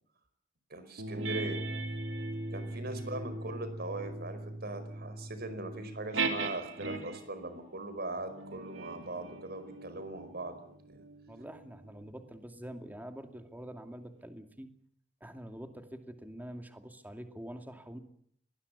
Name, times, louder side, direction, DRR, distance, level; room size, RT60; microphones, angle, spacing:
voice 1, 0.7-1.6 2.5-11.0, right 2 dB, 55° right, 11 dB, 4.9 m, -40 dB
sound 1, 1.0-7.4 8.1-13.0, right 3 dB, 85° right, 3.4 m, -39 dB
voice 2, 11.3-14.7 15.2-18.0, equal, 10° right, 6 dB, 2.4 m, -46 dB
23.5 x 20.0 x 8.4 m, 0.64 s
head